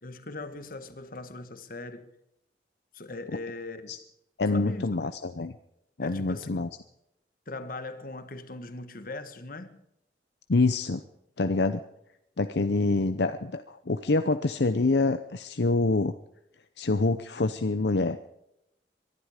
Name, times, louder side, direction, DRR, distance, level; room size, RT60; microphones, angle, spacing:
voice 1, 0.0-2.1 2.9-3.9 4.5-5.1 6.0-6.7 7.5-9.8, left 2 dB, 50° left, 1.4 m, -39 dB
voice 2, 4.4-5.5 6.0-6.7 10.5-11.0 11.4-11.8 12.4-16.1 16.8-18.2, left 3 dB, 70° left, 0.7 m, -26 dB
23.5 x 11.5 x 5.0 m
head